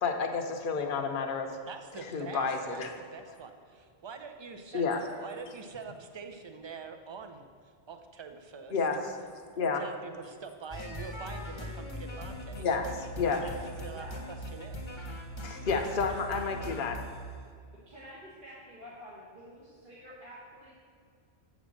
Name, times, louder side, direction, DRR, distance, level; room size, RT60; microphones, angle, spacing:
voice 1, 0.0-1.6 2.0-2.9 4.7-5.0 8.7-9.2 9.6-9.8 12.6-13.4 15.4-17.0, left 4 dB, 55° left, 4 dB, 0.9 m, -30 dB
voice 2, 1.7-2.8 3.1-4.8 5.2-7.5 7.9-8.8 9.6-12.7 13.3-14.8, right 5 dB, 35° right, 6 dB, 0.5 m, -45 dB
voice 3, 4.6-5.2 13.2-13.5 13.9-14.2 15.8-16.1 17.9-20.8, equal, 55° right, -8 dB, 1.6 m, -48 dB
sound 1, 10.7-17.3, equal, 30° left, 0.9 m, -40 dB
7.8 x 5.1 x 6.4 m, 2.1 s
omnidirectional pair, 1.1 m